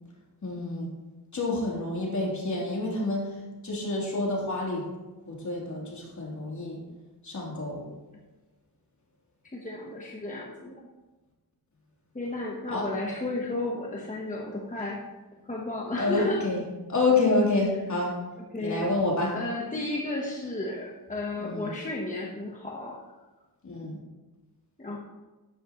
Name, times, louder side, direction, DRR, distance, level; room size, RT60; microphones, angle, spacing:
voice 1, 0.4-0.9 1.3-3.2 3.6-4.8 5.3-6.8 7.2-7.8 12.7-12.9 16.0-16.6 16.9-18.1 18.6-19.3 21.4-21.7 23.6-23.9, left 2 dB, 45° left, -4 dB, 3.5 m, -28 dB
voice 2, 9.5-10.9 12.1-15.0 15.4-16.5 18.5-18.9 19.3-23.0 24.8-25.0, left 2 dB, 20° left, -2 dB, 1.2 m, -33 dB
13.0 x 10.5 x 3.1 m, 1.2 s
wide cardioid pair, 160°, 39 cm